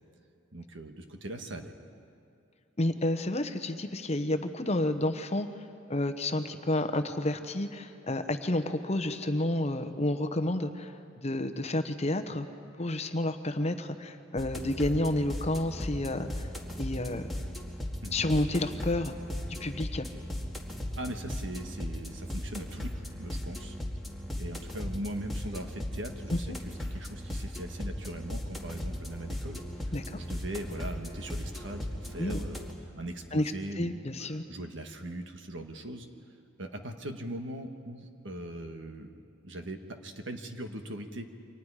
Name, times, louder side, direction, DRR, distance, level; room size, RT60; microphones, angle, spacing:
voice 1, 0.5-1.7 18.0-18.2 21.0-23.7 24.4-32.7 32.9-34.1 34.5-36.1 36.6-41.3, right 1 dB, 65° right, 5 dB, 1.6 m, -40 dB
voice 2, 2.8-5.5 5.9-12.5 12.8-16.5 16.8-17.3 18.1-19.1 19.5-20.1 26.3-26.6 29.9-30.2 32.2-32.4 33.3-34.4, left 1 dB, 35° left, 8 dB, 1.0 m, -30 dB
sound 1, 14.4-32.7, left 1 dB, ahead, 2.0 m, -37 dB
29.0 x 24.5 x 4.9 m, 2.6 s
head